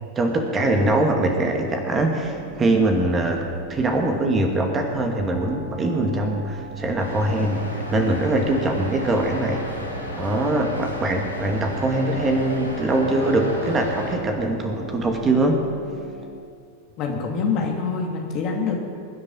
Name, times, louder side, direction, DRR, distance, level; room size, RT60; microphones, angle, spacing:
voice 1, 0.2-3.4 3.7-9.6 10.2-15.5, right 2 dB, 20° right, 3 dB, 2.3 m, -22 dB
sound 1, 0.6-16.4, right 1 dB, 10° left, 2.9 m, -40 dB
sound 2, 7.0-14.2, equal, 90° right, 4.9 m, -33 dB
voice 2, 17.0-18.8, left 5 dB, 40° left, 1 dB, 2.7 m, -25 dB
22.5 x 9.8 x 5.7 m, 2.3 s
figure-of-eight pair, 90°, 0 cm